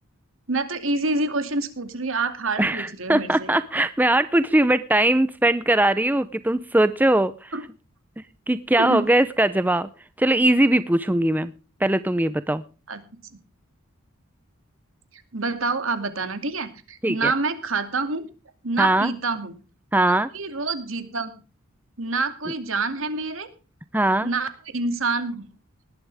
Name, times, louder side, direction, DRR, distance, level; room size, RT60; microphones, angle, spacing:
voice 1, 0.5-3.5 7.5-7.6 8.8-9.1 12.9-13.0 15.3-18.2 18.6-19.6 20.3-21.3 22.0-23.5 24.2-25.5, right 3 dB, 65° right, 10 dB, 2.5 m, -27 dB
voice 2, 2.6-7.5 8.5-9.9 10.2-11.5 11.8-12.6 17.0-17.3 18.8-19.1 19.9-20.3 23.9-24.3, right 1 dB, 10° right, 14 dB, 0.5 m, -20 dB
19.0 x 11.5 x 3.5 m, 0.35 s
head